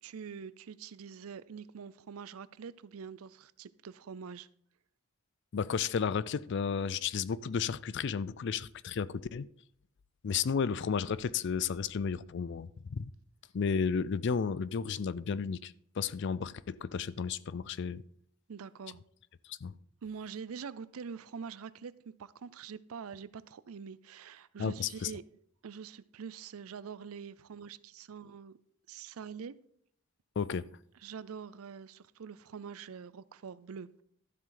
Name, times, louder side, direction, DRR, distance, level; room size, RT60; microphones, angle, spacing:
voice 1, 0.0-4.5 18.5-19.0 20.0-25.2 25.6-28.6 28.9-29.6 31.0-34.0, right 6 dB, 75° right, 0.5 m, -45 dB
voice 2, 5.5-9.5 10.2-13.1 13.5-18.0 19.5-19.7 24.6-25.1 30.4-30.7, left 6 dB, 55° left, 0.4 m, -33 dB
12.5 x 7.5 x 3.9 m
head